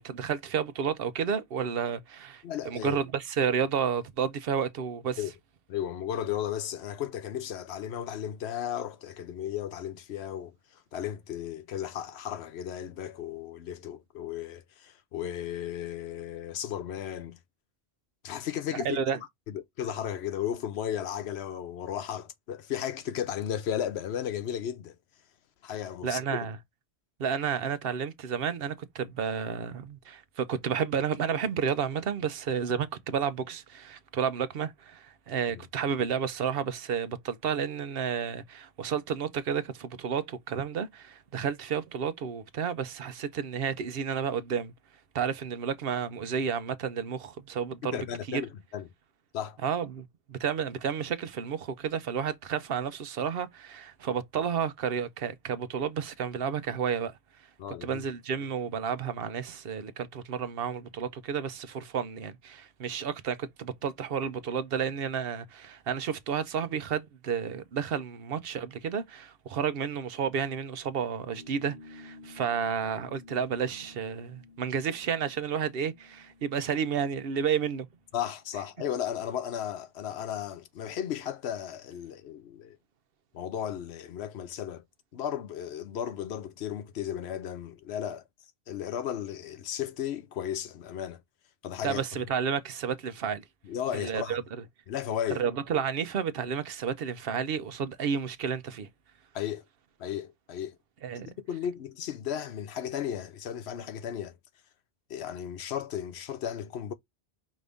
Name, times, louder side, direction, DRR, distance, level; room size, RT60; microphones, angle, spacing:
voice 1, 0.0-5.2 18.7-19.2 26.0-26.6 27.2-44.7 45.1-48.0 48.3-48.4 49.6-57.1 57.8-77.9 91.8-93.4 93.9-94.4 95.4-98.9 101.0-101.3, right 7 dB, 65° right, 0.8 m, -31 dB
voice 2, 2.4-3.0 5.2-5.3 5.7-10.5 10.9-17.4 18.2-19.0 19.5-24.9 25.6-26.4 35.5-35.6 47.8-48.9 49.3-49.6 57.6-58.0 78.1-82.8 83.3-84.8 85.1-88.2 88.7-91.2 91.6-92.0 93.7-94.4 94.9-95.4 99.3-99.6 100.0-100.8 101.3-104.4 105.1-106.9, left 10 dB, 80° left, 0.9 m, -35 dB
sound 1, 71.3-78.3, left 3 dB, 45° right, 1.3 m, -53 dB
5.2 x 2.6 x 3.4 m
omnidirectional pair, 1.1 m